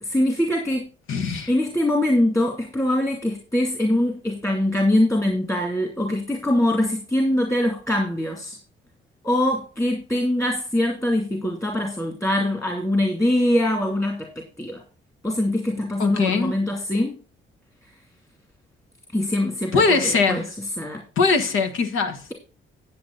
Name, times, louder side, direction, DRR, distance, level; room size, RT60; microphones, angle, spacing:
voice 1, 0.0-0.8 1.5-8.6 9.2-14.3 14.6-14.8 15.2-17.1 19.1-20.4 20.8-21.0, left 1 dB, 15° left, 2.4 m, -23 dB
voice 2, 1.1-1.5 16.0-16.6 19.7-20.5 21.2-22.2, left 4 dB, 85° left, 1.4 m, -21 dB
9.5 x 8.6 x 3.9 m
cardioid pair, 90°, 20 cm